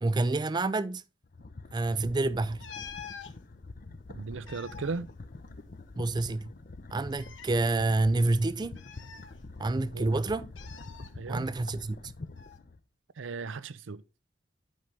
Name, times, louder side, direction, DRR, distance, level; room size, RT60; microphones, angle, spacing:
voice 1, 0.0-1.0 1.7-2.7 6.0-6.5 6.9-8.8 9.6-10.5 11.3-12.0, right 2 dB, 25° right, 0.4 m, -28 dB
sound 1, 1.2-12.8, left 3 dB, 50° left, 0.7 m, -46 dB
sound 2, 2.6-3.3 4.2-5.9 6.2-6.3 7.1-7.6 8.8-9.8 10.6-11.1 12.4-12.6, left 7 dB, 75° left, 1.0 m, -46 dB
voice 2, 4.1-5.1 9.9-10.1 11.2-11.5 13.2-14.0, right 4 dB, 85° right, 0.5 m, -36 dB
10.5 x 5.4 x 3.5 m
head